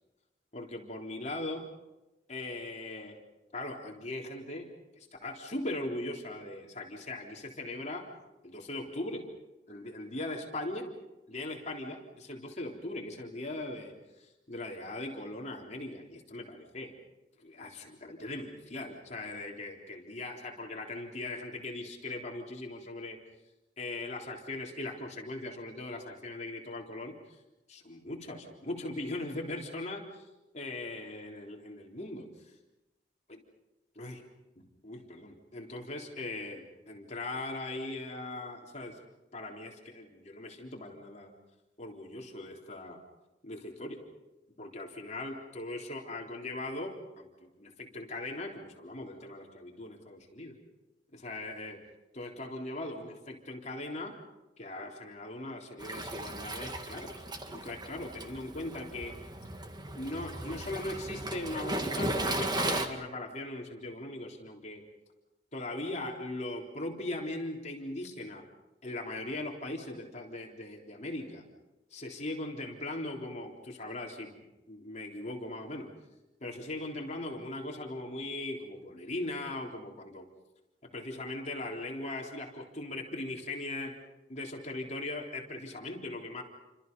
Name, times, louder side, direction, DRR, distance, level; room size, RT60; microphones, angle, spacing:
voice 1, 0.5-1.7 2.3-3.2 3.5-8.1 8.4-9.2 9.7-10.9 11.3-13.9 14.2-16.9 17.4-23.2 23.8-27.1 27.7-30.3 30.5-32.3 33.3-33.4 34.0-34.2 34.6-39.0 39.3-41.3 41.8-43.0 43.4-44.0 44.6-50.6 51.1-51.8 52.1-54.2 54.6-57.1 57.5-59.2 59.9-64.8 65.5-68.4 68.8-71.5 71.9-74.3 74.7-75.9 76.4-80.3 80.9-83.9 84.3-86.4, left 2 dB, 40° left, 0 dB, 3.7 m, -39 dB
Waves surf, 55.8-62.9, right 1 dB, 25° right, 2.0 m, -36 dB
29.5 x 25.5 x 5.5 m, 1.0 s
head